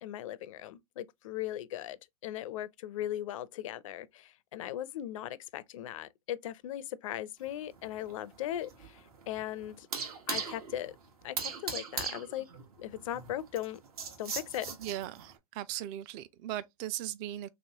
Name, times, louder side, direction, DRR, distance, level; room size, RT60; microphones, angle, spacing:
voice 1, 0.0-9.9 10.3-11.0 11.2-12.5 12.8-13.8 14.2-14.7, left 12 dB, 60° left, 0.4 m, -38 dB
sound 1, 7.4-15.3, right 6 dB, 70° right, 1.1 m, -40 dB
voice 2, 14.8-17.5, right 13 dB, 35° right, 0.4 m, -38 dB
3.2 x 3.0 x 2.8 m
hypercardioid pair, 125°, 19 cm